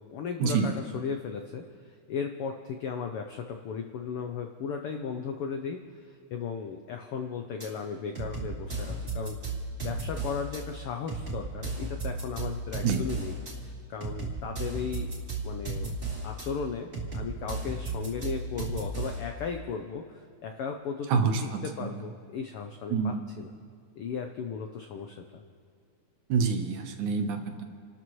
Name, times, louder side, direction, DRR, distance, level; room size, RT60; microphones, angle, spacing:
voice 1, 0.1-9.4 9.8-15.1 15.4-15.9 16.2-23.5 24.0-25.4, left 6 dB, 90° left, 5 dB, 1.2 m, -36 dB
sound 1, 7.6-7.7 8.2-10.6 11.1-13.5 14.0-16.5 16.9-19.3, right 3 dB, 20° right, 2.6 m, -34 dB
voice 2, 21.1-21.4 21.8-21.9 22.9-23.3 26.3-27.6, right 5 dB, 80° right, 5 dB, 2.7 m, -26 dB
29.0 x 13.0 x 3.1 m, 2.2 s
omnidirectional pair, 3.5 m